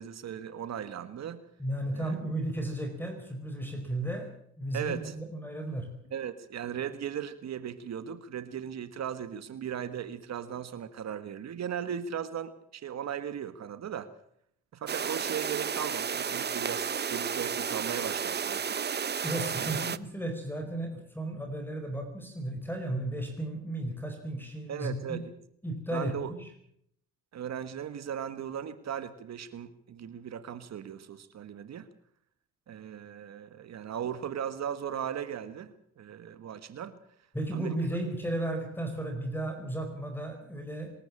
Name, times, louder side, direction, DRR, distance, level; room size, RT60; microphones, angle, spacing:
voice 1, 0.0-1.4 1.9-2.2 4.7-5.1 6.1-14.1 14.7-18.8 19.6-19.8 24.7-25.3 25.9-26.3 27.3-31.9 32.7-37.0 37.5-37.7, right 9 dB, 60° right, 12 dB, 1.6 m, -37 dB
voice 2, 1.6-5.9 19.2-25.2 25.6-26.5 37.3-40.9, right 1 dB, 5° left, 5 dB, 4.9 m, -34 dB
sound 1, 14.9-20.0, right 7 dB, 35° right, 0.9 m, -32 dB
24.5 x 13.5 x 8.6 m, 0.69 s
cardioid pair, 90°, 30 cm